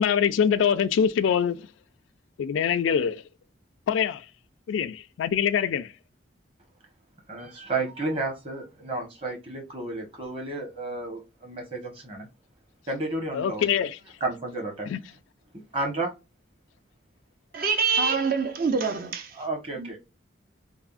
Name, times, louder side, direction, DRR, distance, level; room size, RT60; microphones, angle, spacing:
voice 1, 0.0-1.6 2.4-3.2 3.9-4.2 4.7-5.9 13.3-14.0 14.9-15.0, left 7 dB, 80° left, 0.3 m, -24 dB
voice 2, 7.3-12.3 12.9-13.7 14.2-14.9 15.7-16.1 19.4-20.0, right 2 dB, 30° right, 0.9 m, -32 dB
voice 3, 17.5-19.4 19.7-19.9, right 5 dB, 45° right, 0.4 m, -25 dB
3.4 x 2.0 x 2.3 m
head